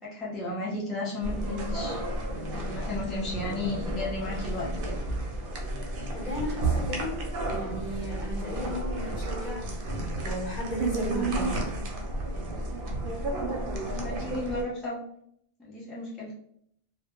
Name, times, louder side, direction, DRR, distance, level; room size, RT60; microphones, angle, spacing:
voice 1, 0.0-4.9 13.8-15.0 15.6-16.3, left 2 dB, ahead, -7 dB, 0.4 m, -34 dB
sound 1, 1.2-14.6, right 2 dB, 65° right, 0.7 m, -32 dB
voice 2, 6.1-7.2 7.5-11.6, equal, 45° left, -3 dB, 0.7 m, -35 dB
2.1 x 2.0 x 2.9 m, 0.69 s
omnidirectional pair, 1.1 m